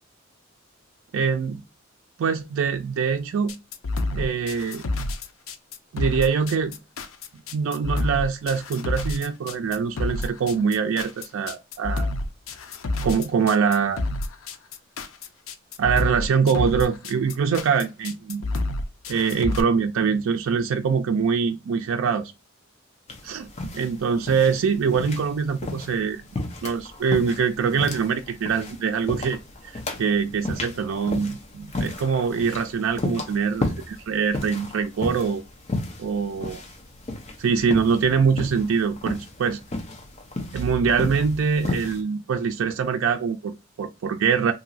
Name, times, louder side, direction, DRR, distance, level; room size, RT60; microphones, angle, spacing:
voice 1, 1.1-1.6 2.2-3.6 4.1-4.8 5.9-6.8 7.5-12.1 13.0-14.1 15.8-18.4 19.1-22.3 23.2-26.2 26.6-29.4 30.0-35.4 36.0-36.6 37.4-39.6 40.5-44.5, right 6 dB, 75° right, 0.4 m, -24 dB
sound 1, 3.5-19.6, left 2 dB, 80° left, 0.5 m, -29 dB
sound 2, 23.1-42.0, left 2 dB, 35° left, 0.7 m, -33 dB
2.9 x 2.6 x 2.6 m
head